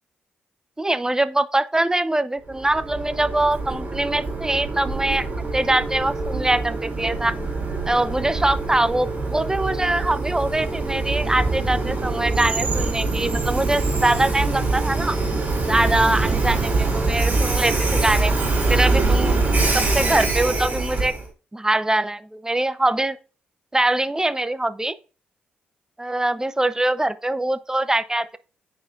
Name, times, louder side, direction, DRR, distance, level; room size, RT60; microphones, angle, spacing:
voice 1, 0.8-5.3 5.5-7.4 7.9-15.2 15.7-18.3 18.7-19.4 19.7-21.1 21.5-23.2 23.7-24.9 26.0-28.4, right 1 dB, 15° right, 0.7 m, -23 dB
Train, 2.5-21.3, right 3 dB, 35° right, 2.6 m, -24 dB
9.3 x 4.5 x 2.5 m
hypercardioid pair, 40°, 5 cm